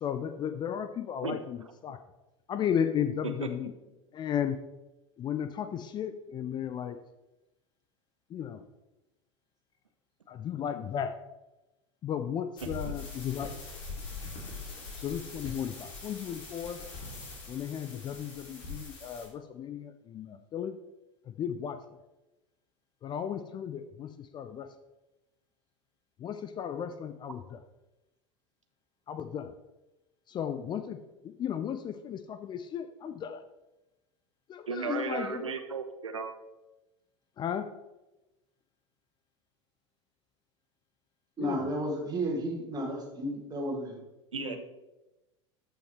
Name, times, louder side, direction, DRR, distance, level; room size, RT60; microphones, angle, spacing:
voice 1, 0.0-2.0 2.5-3.7 4.1-4.6 5.2-7.0 8.3-8.6 10.3-11.2 12.0-13.5 15.0-16.8 17.5-20.8 21.4-21.8 23.0-24.7 26.2-27.6 29.1-29.5 30.3-31.0 31.4-33.4 34.5-35.5 37.4-37.7 41.4-41.6, left 8 dB, 30° left, 10 dB, 0.5 m, -34 dB
voice 2, 1.2-1.7 12.8-12.9 34.7-36.3 44.3-44.6, right 5 dB, 75° right, 7 dB, 0.7 m, -35 dB
electric noise, 12.6-19.3, left 3 dB, 50° left, 3.0 m, -42 dB
voice 3, 41.4-44.0 44.4-44.6, equal, 25° right, 1 dB, 2.2 m, -33 dB
13.5 x 5.7 x 3.3 m, 1.0 s
figure-of-eight pair, 80°, 16 cm